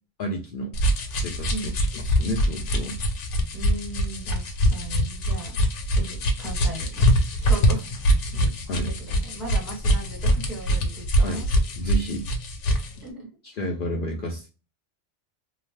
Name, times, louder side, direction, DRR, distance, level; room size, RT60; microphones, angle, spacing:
voice 1, 0.2-0.7 1.1-3.0 8.7-8.9 11.2-11.4 11.8-12.2 13.4-14.5, equal, 60° left, 1 dB, 0.6 m, -31 dB
sound 1, 0.7-12.9, equal, 80° left, 1.0 m, -23 dB
voice 2, 3.5-5.5 5.9-7.1 7.4-7.8 8.3-8.5 9.0-11.4 13.0-13.3, right 2 dB, 40° right, -2 dB, 1.4 m, -37 dB
2.8 x 2.1 x 3.0 m, 0.32 s
omnidirectional pair, 1.2 m